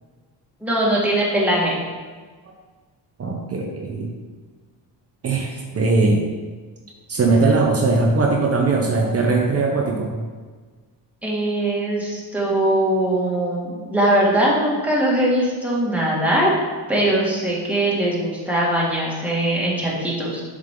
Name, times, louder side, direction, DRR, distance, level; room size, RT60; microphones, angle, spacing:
voice 1, 0.6-1.8 11.2-16.5 16.9-20.4, right 1 dB, 5° right, -6 dB, 2.1 m, -21 dB
voice 2, 3.2-4.1 5.2-6.2 7.1-10.1, right 3 dB, 35° right, 0 dB, 0.9 m, -20 dB
7.5 x 5.0 x 3.8 m, 1.4 s
cardioid pair, 110°, 40 cm